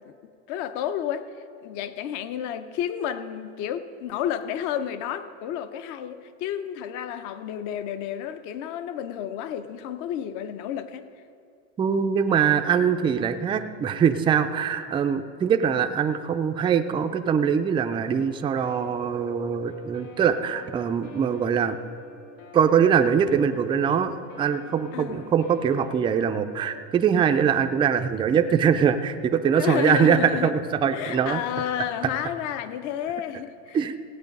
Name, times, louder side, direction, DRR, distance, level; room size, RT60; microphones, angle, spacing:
voice 1, 0.5-1.3 1.6-11.0 24.9-25.2 29.6-30.5 30.9-33.8, left 10 dB, 55° left, 12 dB, 0.8 m, -31 dB
voice 2, 11.8-21.8 22.5-31.4 33.7-33.9, right 7 dB, 15° right, 7 dB, 0.3 m, -23 dB
Guitar, 18.0-26.7, left 5 dB, 75° left, 2.0 m, -47 dB
16.5 x 8.1 x 5.3 m, 2.5 s
supercardioid pair, 140°, 37 cm